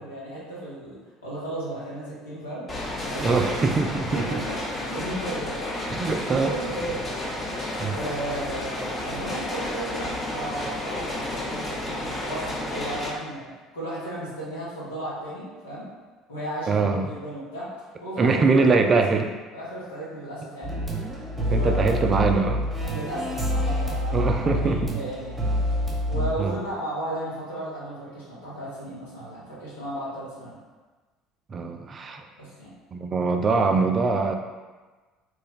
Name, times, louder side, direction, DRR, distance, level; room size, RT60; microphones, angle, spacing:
voice 1, 0.0-2.7 2.9-3.5 4.1-4.6 4.8-5.7 6.0-7.0 7.3-15.9 16.3-17.7 18.0-19.0 19.5-20.8 21.5-22.0 22.8-25.4 26.1-30.5 32.4-32.7, right 1 dB, 80° left, -8 dB, 1.1 m, -34 dB
sound 1, 2.7-13.1, left 1 dB, 30° left, 0.8 m, -31 dB
voice 2, 3.2-4.4 5.9-6.6 7.8-8.0 16.7-17.1 18.2-19.3 21.5-22.6 24.1-24.9 26.4-26.6 31.5-32.2 32.9-34.3, right 4 dB, 35° right, 4 dB, 0.3 m, -23 dB
sound 2, 20.6-26.3, equal, 20° right, 0.9 m, -27 dB
3.1 x 2.2 x 3.5 m, 1.3 s
figure-of-eight pair, 60°, 0 cm